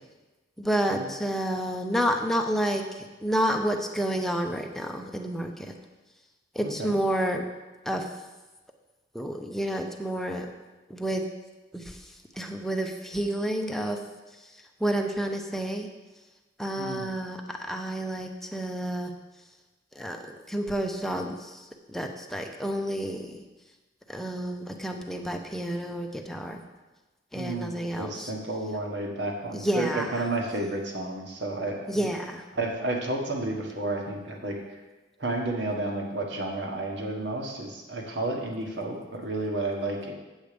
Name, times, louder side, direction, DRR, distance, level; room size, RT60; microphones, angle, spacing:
voice 1, 0.6-5.7 6.5-7.5 7.8-8.1 9.1-10.5 10.9-11.3 11.7-12.0 12.4-14.0 14.8-15.9 16.6-19.1 19.9-23.4 24.1-26.6 27.3-28.3 29.5-30.0 31.9-32.4, right 1 dB, ahead, 3 dB, 0.7 m, -30 dB
voice 2, 6.6-7.0 16.8-17.1 27.3-32.1 32.5-34.8 35.2-40.1, right 2 dB, 70° right, 1 dB, 1.6 m, -31 dB
8.0 x 8.0 x 5.2 m, 1.2 s
head